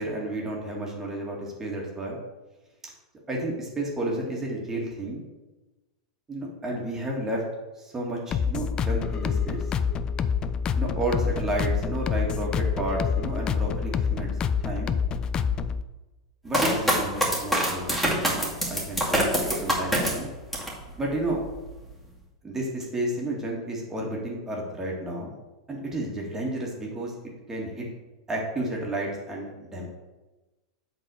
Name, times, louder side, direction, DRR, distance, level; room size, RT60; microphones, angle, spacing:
voice 1, 0.0-2.2 3.3-5.2 6.3-7.4 7.8-9.6 10.8-14.3 14.6-14.9 16.4-20.3 21.0-21.4 22.4-25.4 25.7-27.1 27.5-27.9 28.3-29.9, right 1 dB, 15° right, -3 dB, 2.1 m, -31 dB
sound 1, 8.3-15.8, left 6 dB, 30° left, 0.4 m, -27 dB
sound 2, 16.5-20.8 21.2-21.9, equal, 5° left, 2.4 m, -25 dB
7.8 x 4.1 x 6.5 m, 1.1 s
figure-of-eight pair, 90°, 3 cm